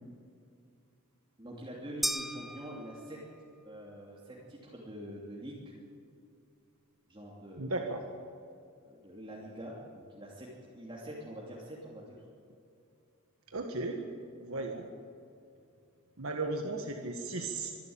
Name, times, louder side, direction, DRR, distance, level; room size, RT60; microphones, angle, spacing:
voice 1, 1.4-3.2 3.6-5.8 7.1-7.8 8.8-10.5 10.7-12.2, equal, 25° right, -5 dB, 2.9 m, -45 dB
sound 1, 2.0-3.5, equal, ahead, 0.5 m, -36 dB
voice 2, 7.6-8.0 13.5-14.0 14.4-14.9 16.2-17.7, right 2 dB, 75° right, 3 dB, 1.6 m, -35 dB
25.0 x 12.0 x 8.9 m, 2.5 s
head